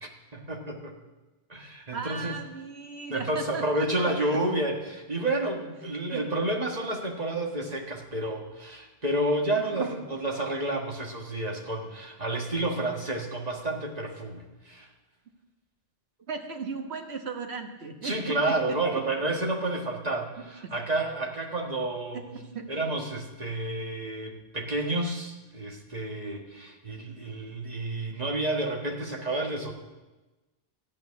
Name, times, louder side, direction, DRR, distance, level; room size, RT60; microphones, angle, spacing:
voice 1, 0.0-1.0 1.5-2.4 3.1-14.9 18.0-22.3 22.7-29.7, right 2 dB, 40° right, 1 dB, 1.6 m, -30 dB
voice 2, 1.9-4.1 6.1-6.2 9.5-9.9 16.3-18.8 20.6-20.7 22.1-22.7, right 4 dB, 80° right, 4 dB, 1.6 m, -36 dB
14.0 x 5.4 x 9.5 m, 1.1 s
omnidirectional pair, 1.1 m